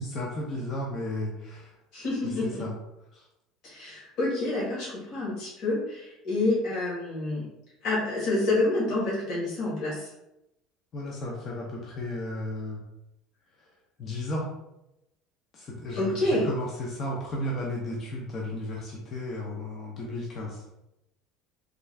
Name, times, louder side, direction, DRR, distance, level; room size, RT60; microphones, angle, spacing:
voice 1, 0.0-1.7 2.2-2.7 3.1-3.3 10.9-12.8 13.6-13.7 14.0-14.5 15.5-20.7, left 1 dB, 30° left, -2 dB, 0.5 m, -34 dB
voice 2, 1.9-2.7 3.6-7.4 7.8-10.1 15.9-16.5, left 2 dB, 45° left, -7 dB, 1.5 m, -28 dB
3.6 x 2.3 x 3.2 m, 0.87 s
cardioid pair, 160°, 0 cm